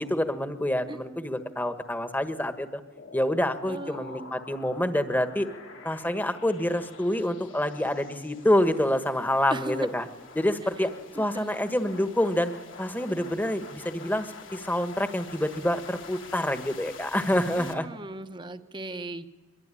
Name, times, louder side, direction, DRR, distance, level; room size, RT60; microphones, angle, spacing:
voice 1, 0.0-2.8 3.1-5.5 5.8-10.0 10.3-10.9 11.2-12.5 12.8-17.9, left 1 dB, 10° left, 9 dB, 1.5 m, -27 dB
sound 1, 3.0-17.7, left 4 dB, 75° left, 3.0 m, -47 dB
voice 2, 3.7-4.3 9.5-9.9 10.8-11.9 17.6-19.3, right 2 dB, 25° right, 10 dB, 1.1 m, -38 dB
23.5 x 23.0 x 10.0 m, 1.2 s
head